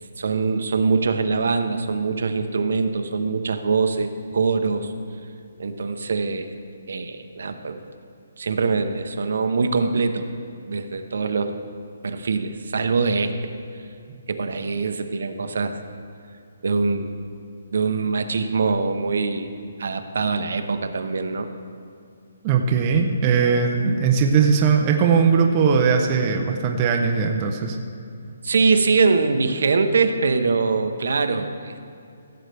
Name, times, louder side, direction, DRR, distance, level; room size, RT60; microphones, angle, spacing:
voice 1, 0.2-4.9 5.6-6.5 6.9-7.8 8.4-10.3 10.7-11.5 12.0-13.3 14.3-15.8 16.6-17.1 17.7-19.5 19.8-21.5 28.4-31.9, right 4 dB, 65° right, 8 dB, 0.7 m, -23 dB
voice 2, 22.4-27.8, right 6 dB, 20° right, 2 dB, 0.5 m, -19 dB
15.5 x 7.9 x 3.3 m, 2.5 s
hypercardioid pair, 175°, 0 cm